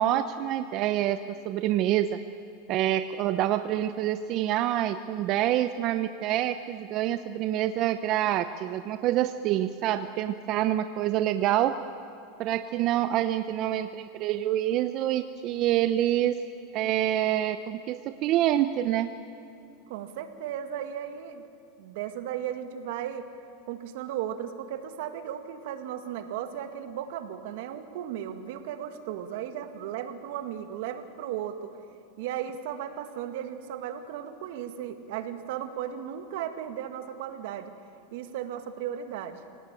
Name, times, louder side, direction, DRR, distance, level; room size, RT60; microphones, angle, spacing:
voice 1, 0.0-2.2 2.7-11.8 12.4-16.4 16.7-19.1, right 12 dB, 40° right, 10 dB, 0.8 m, -26 dB
voice 2, 19.9-21.4 21.8-23.3 23.7-31.8 32.2-37.7 38.1-39.4, right 10 dB, 65° right, 8 dB, 2.0 m, -35 dB
25.5 x 18.0 x 9.1 m, 2.7 s
supercardioid pair, 145°, 0 cm